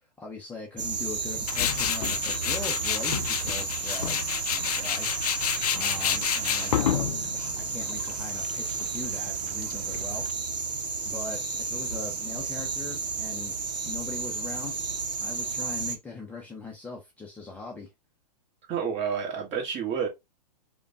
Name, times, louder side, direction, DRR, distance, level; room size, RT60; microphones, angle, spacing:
voice 1, 0.0-4.2 4.5-5.1 5.7-10.2 11.0-13.5 13.8-14.8 15.2-17.9, left 3 dB, 5° left, 0.6 m, -40 dB
sound 1, 0.8-16.0, right 5 dB, 80° right, 0.7 m, -32 dB
Tools, 1.5-10.3, left 10 dB, 65° left, 0.5 m, -30 dB
voice 2, 18.7-20.1, right 7 dB, 30° right, 1.5 m, -29 dB
5.0 x 2.3 x 2.5 m
hypercardioid pair, 120°, 21 cm